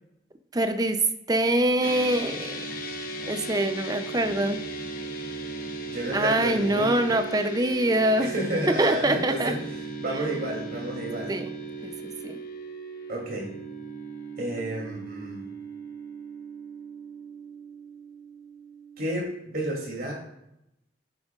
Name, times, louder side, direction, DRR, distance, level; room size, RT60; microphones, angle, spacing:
voice 1, 0.5-1.0 1.3-2.7 3.3-4.6 6.1-8.3 8.8-9.6 11.3-11.5 11.8-11.9 12.2-12.4, right 1 dB, 20° right, 8 dB, 0.5 m, -24 dB
sound 1, 1.8-19.2, right 3 dB, 45° left, 1.1 m, -37 dB
voice 2, 5.9-7.1 8.2-11.4 13.1-13.5 14.4-15.5 19.0-20.1, right 1 dB, 50° right, -2 dB, 2.9 m, -31 dB
9.1 x 8.9 x 2.4 m, 0.83 s
head